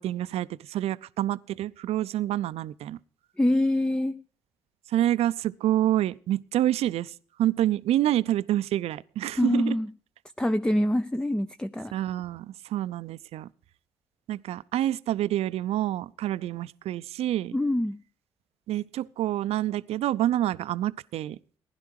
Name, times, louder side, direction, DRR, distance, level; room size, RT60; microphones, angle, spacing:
voice 1, 0.0-3.0 4.9-7.1 7.4-9.7 11.9-13.5 14.3-17.6 18.7-21.4, right 13 dB, 65° right, 0.5 m, -27 dB
voice 2, 3.4-4.1 9.4-9.9 10.4-11.9 17.5-18.0, left 1 dB, 5° left, 0.5 m, -25 dB
16.0 x 10.5 x 4.7 m
hypercardioid pair, 50°, 11 cm